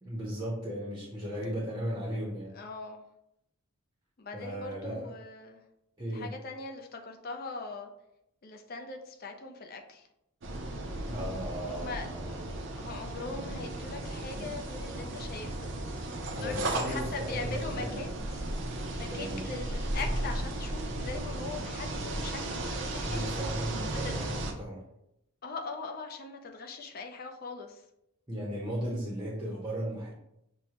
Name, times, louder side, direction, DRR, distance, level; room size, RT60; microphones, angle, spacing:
voice 1, 0.0-2.6 4.3-5.1 6.0-6.3 11.0-12.4 16.3-17.9 19.1-19.5 23.0-24.8 28.3-30.1, equal, 15° right, -5 dB, 0.7 m, -36 dB
voice 2, 2.5-3.1 4.2-5.6 6.1-7.9 8.4-10.1 11.5-12.4 12.8-15.7 16.4-18.4 19.0-23.2 24.0-24.3 25.4-27.8, left 3 dB, 45° left, 3 dB, 0.5 m, -41 dB
sound 1, 10.4-24.5, right 2 dB, 55° right, 0.5 m, -35 dB
6.2 x 2.1 x 2.8 m, 0.82 s
head